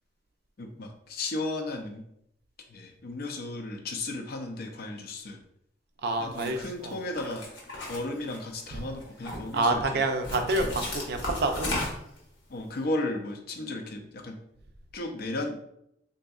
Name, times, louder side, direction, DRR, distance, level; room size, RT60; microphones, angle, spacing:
voice 1, 0.6-2.0 2.6-5.4 6.2-7.6 7.9-10.0 12.5-14.4 14.9-15.6, left 2 dB, 55° left, 3 dB, 0.5 m, -34 dB
voice 2, 6.0-7.0 9.5-11.7, right 2 dB, 60° right, 5 dB, 0.4 m, -28 dB
sound 1, 6.3-6.7 7.2-8.6 9.0-9.6 10.2-12.2, left 1 dB, 75° left, 1.0 m, -35 dB
3.6 x 2.6 x 2.3 m, 0.76 s
head